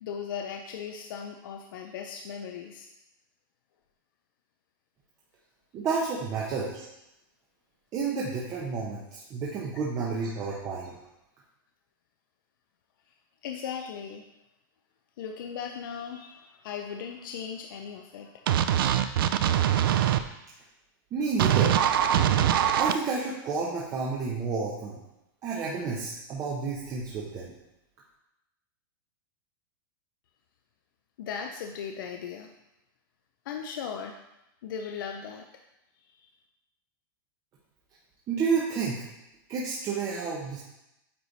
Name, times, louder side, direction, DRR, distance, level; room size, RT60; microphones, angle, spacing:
voice 1, 0.0-2.9 13.4-14.3 15.2-18.8 31.2-32.5 33.4-34.2 34.6-35.5 36.2-36.3, left 7 dB, 65° left, 4 dB, 0.6 m, -38 dB
voice 2, 5.7-6.9 7.9-10.9 21.1-21.7 22.8-25.0 25.4-27.5 38.3-39.0 39.5-40.6, right 4 dB, 25° right, -5 dB, 0.9 m, -30 dB
sound 1, 18.5-20.2 21.4-22.9, right 10 dB, 80° right, 0.4 m, -23 dB
8.8 x 3.2 x 4.1 m, 0.89 s
supercardioid pair, 155°, 12 cm